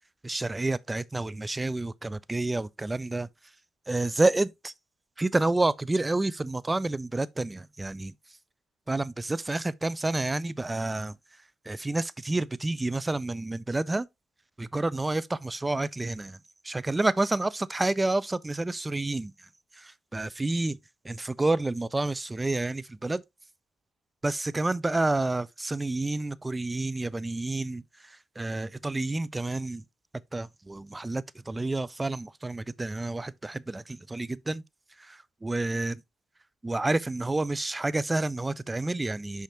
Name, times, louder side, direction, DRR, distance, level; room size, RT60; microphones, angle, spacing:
voice 1, 0.2-3.5 3.9-4.7 5.2-8.4 8.9-14.1 14.6-16.4 16.6-20.8 21.0-23.2 24.2-29.8 30.3-34.6 35.0-36.0 36.6-39.4, right 2 dB, 20° right, 0.4 m, -29 dB
5.9 x 5.7 x 2.9 m
hypercardioid pair, 50°, 0 cm